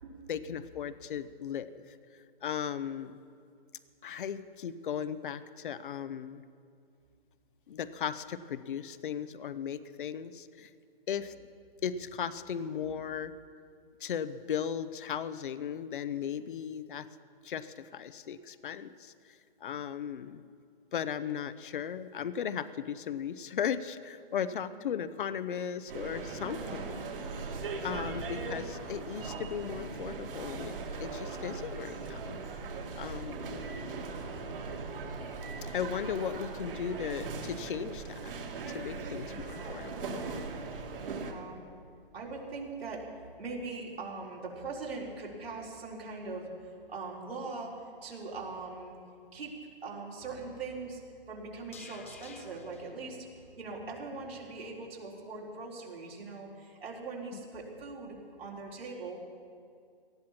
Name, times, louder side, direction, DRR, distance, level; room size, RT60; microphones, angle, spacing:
voice 1, 0.3-2.0 2.4-3.2 4.0-6.4 7.7-10.7 11.1-11.3 11.8-13.3 14.0-17.1 17.4-19.1 19.6-20.4 20.9-26.9 27.8-32.4 33.0-33.6 35.7-38.2 38.7-40.2, left 8 dB, 60° left, 14 dB, 0.8 m, -36 dB
sound 1, 25.9-41.3, right 4 dB, 65° right, 2.5 m, -39 dB
voice 2, 26.4-27.0 27.9-29.0 33.9-34.0 38.8-39.6 41.0-41.7 42.1-43.1 43.4-47.7 48.0-49.0 49.3-49.5 49.8-51.0 51.3-53.3 53.6-59.2, right 3 dB, 85° right, -3 dB, 4.2 m, -42 dB
sound 2, 50.2-54.4 54.7-54.8, left 4 dB, 15° left, 0.4 m, -54 dB
18.5 x 14.5 x 4.4 m, 2.3 s
hypercardioid pair, 160°, 30 cm